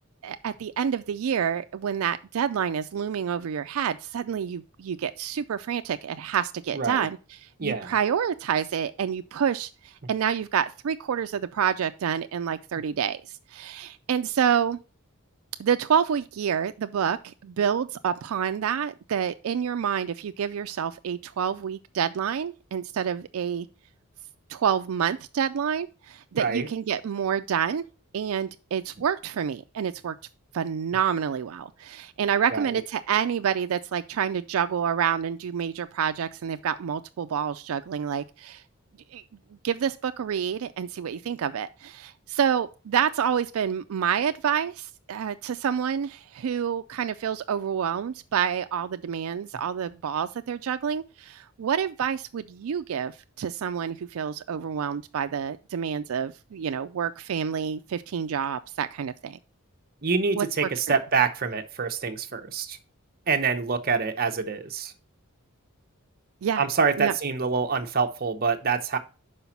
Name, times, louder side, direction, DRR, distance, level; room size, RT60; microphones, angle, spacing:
voice 1, 0.2-14.8 15.6-23.7 24.5-27.8 28.1-30.1 30.5-38.6 39.1-39.2 39.6-59.4 60.3-60.7 66.4-66.6 67.0-67.1, right 8 dB, 85° right, 0.4 m, -28 dB
voice 2, 6.7-7.1 7.6-7.9 26.4-26.7 32.5-32.8 60.0-62.8 63.3-64.9 66.6-69.0, right 5 dB, 45° right, 0.8 m, -26 dB
5.5 x 5.0 x 5.8 m
head